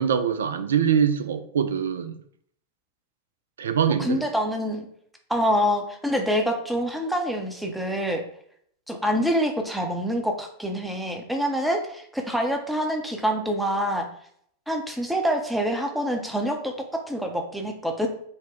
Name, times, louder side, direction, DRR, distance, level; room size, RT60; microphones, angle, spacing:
voice 1, 0.0-2.2 3.6-4.2, right 7 dB, 65° right, 10 dB, 0.3 m, -23 dB
voice 2, 4.0-4.9 5.3-8.2 8.9-14.1 14.7-18.1, equal, 5° right, 3 dB, 0.6 m, -26 dB
4.0 x 2.1 x 3.1 m, 0.65 s
figure-of-eight pair, 90°, 0 cm